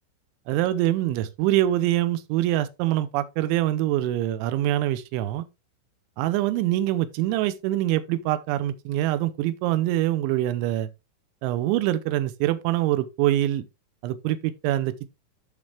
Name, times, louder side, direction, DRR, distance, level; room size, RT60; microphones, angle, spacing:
voice 1, 0.5-5.5 6.2-10.9 11.4-13.6 14.0-15.1, right 14 dB, 85° right, 2.8 m, -24 dB
10.5 x 5.3 x 3.2 m
omnidirectional pair, 5.9 m